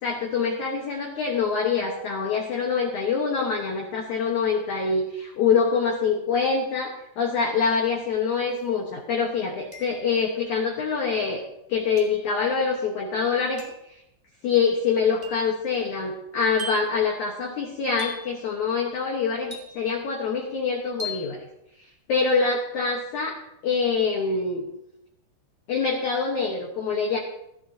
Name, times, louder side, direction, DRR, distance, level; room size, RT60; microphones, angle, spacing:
voice 1, 0.0-5.0 5.4-11.4 11.7-13.6 14.4-21.4 22.1-23.4 23.6-24.6 25.7-27.2, left 5 dB, 60° left, -1 dB, 2.1 m, -25 dB
sound 1, 8.5-8.6 9.7-10.3 12.0-12.3 13.6-13.9 15.2-15.6 16.6-17.0 18.0-18.4 19.5-20.0 21.0-21.3, left 2 dB, 5° left, 0.5 m, -38 dB
17.0 x 13.5 x 2.9 m, 0.82 s
omnidirectional pair, 5.1 m